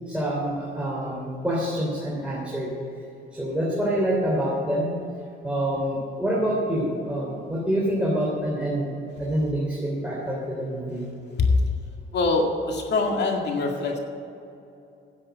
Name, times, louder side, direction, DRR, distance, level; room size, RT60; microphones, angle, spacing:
voice 1, 0.1-2.7 3.3-4.9 5.4-8.9 9.2-11.1, right 1 dB, 5° right, -5 dB, 3.1 m, -26 dB
voice 2, 12.1-14.0, left 3 dB, 60° left, 2 dB, 2.1 m, -24 dB
10.0 x 7.7 x 9.3 m, 2.7 s
cardioid pair, 90°, 20 cm